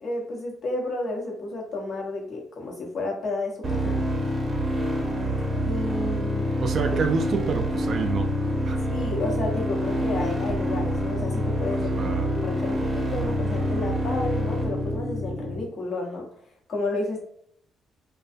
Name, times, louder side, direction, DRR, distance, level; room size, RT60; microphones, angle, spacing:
voice 1, 0.0-4.0 5.6-6.5 8.9-16.2 16.7-17.2, left 2 dB, 55° left, -1 dB, 0.8 m, -31 dB
sound 1, 3.6-15.6, equal, 30° right, 0.7 m, -26 dB
voice 2, 6.6-8.3 8.7-8.8 12.0-12.3, right 5 dB, 55° right, 6 dB, 0.3 m, -28 dB
2.5 x 2.2 x 2.5 m, 0.66 s
cardioid pair, 90°, 0 cm